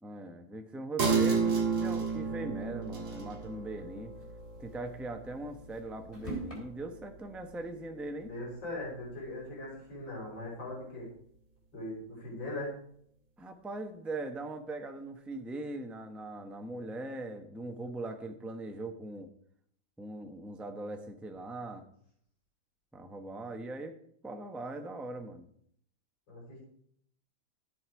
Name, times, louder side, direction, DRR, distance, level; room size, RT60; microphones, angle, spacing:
voice 1, 0.0-4.1 4.6-8.3 13.4-19.3 20.0-21.9 22.9-24.0 24.2-25.5, right 2 dB, ahead, 5 dB, 0.5 m, -40 dB
sound 1, 1.0-8.0 8.4-8.5, right 5 dB, 55° right, 2.5 m, -33 dB
sound 2, 2.1-2.6 3.0-3.1 3.3-3.4 4.0-6.6, right 2 dB, 15° left, 3.8 m, -45 dB
voice 2, 8.2-11.1 11.7-12.7 26.3-26.6, left 1 dB, 70° left, -3 dB, 5.4 m, -40 dB
13.5 x 7.9 x 4.6 m, 0.66 s
omnidirectional pair, 2.1 m